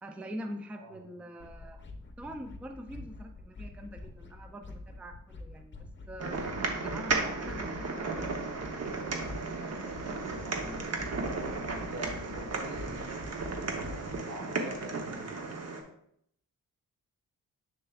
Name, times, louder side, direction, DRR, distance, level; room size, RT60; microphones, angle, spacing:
voice 1, 0.0-1.8 2.2-6.4 6.8-9.0, equal, 5° right, 5 dB, 0.4 m, -44 dB
sound 1, 1.4-14.2, left 2 dB, 35° left, 0.7 m, -46 dB
sound 2, 6.2-15.8, right 3 dB, 50° right, 0.9 m, -35 dB
voice 2, 10.4-10.8 11.6-15.4, right 1 dB, 80° right, -1 dB, 2.0 m, -45 dB
6.7 x 6.7 x 2.3 m, 0.73 s
wide cardioid pair, 145°, 34 cm